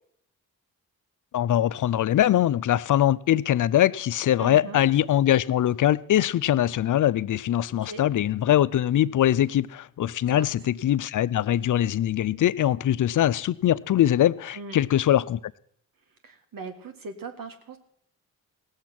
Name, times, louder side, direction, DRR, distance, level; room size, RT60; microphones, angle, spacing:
voice 1, 1.3-15.4, left 12 dB, 55° left, 0.5 m, -22 dB
voice 2, 4.4-4.8 7.8-8.0 10.3-10.5 14.5-14.8 16.2-17.8, right 4 dB, 60° right, 1.7 m, -39 dB
17.0 x 7.2 x 6.0 m
supercardioid pair, 45°, 37 cm